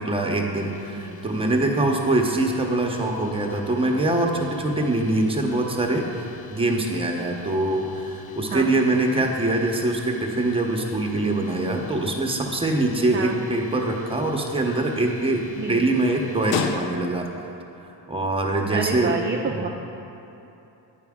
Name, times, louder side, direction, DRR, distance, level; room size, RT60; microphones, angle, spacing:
voice 1, 0.0-6.1 6.5-17.3 18.1-19.2 19.5-19.6, right 2 dB, 10° right, 1 dB, 0.8 m, -23 dB
sound 1, 0.5-17.4, left 8 dB, 60° left, 0.5 m, -40 dB
voice 2, 18.7-19.7, right 5 dB, 30° right, 1 dB, 0.4 m, -29 dB
8.8 x 5.0 x 3.6 m, 2.9 s
cardioid pair, 75°, 44 cm